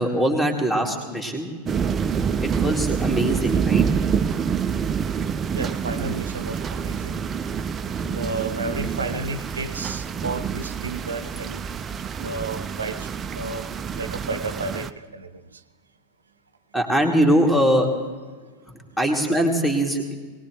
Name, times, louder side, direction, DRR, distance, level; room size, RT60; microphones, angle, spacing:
voice 1, 0.0-1.5 2.2-3.9 16.7-18.1 19.0-20.1, equal, 5° left, 2 dB, 2.5 m, -22 dB
Rumblings of thunder, 1.7-14.9, right 7 dB, 20° right, 0.6 m, -27 dB
voice 2, 5.5-7.2 8.1-11.7 12.2-13.7 14.0-15.6, right 3 dB, 75° right, 11 dB, 0.8 m, -32 dB
22.5 x 19.0 x 3.2 m, 1.3 s
figure-of-eight pair, 90°, 0 cm